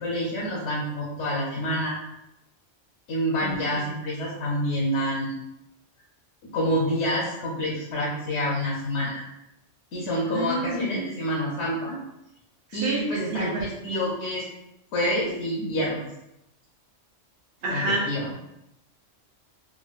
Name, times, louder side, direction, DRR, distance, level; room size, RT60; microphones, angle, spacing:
voice 1, 0.0-2.0 3.1-5.4 6.4-9.2 9.9-12.0 12.7-14.4 14.9-16.1 17.7-18.3, equal, 70° left, -5 dB, 0.9 m, -27 dB
voice 2, 3.4-3.9 10.3-11.0 12.7-13.7 17.6-18.1, right 1 dB, 60° right, -2 dB, 0.8 m, -29 dB
3.6 x 2.1 x 2.3 m, 0.87 s
omnidirectional pair, 1.3 m